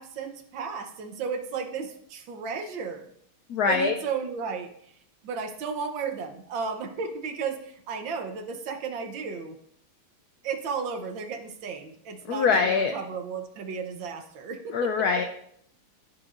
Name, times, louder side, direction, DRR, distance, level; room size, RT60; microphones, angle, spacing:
voice 1, 0.0-3.1 3.6-4.7 5.2-9.6 10.4-15.1, right 5 dB, 65° right, 6 dB, 1.5 m, -34 dB
voice 2, 3.5-3.9 12.3-12.9 14.7-15.2, left 5 dB, 80° left, 6 dB, 0.8 m, -23 dB
14.0 x 6.0 x 2.5 m, 0.68 s
omnidirectional pair, 2.4 m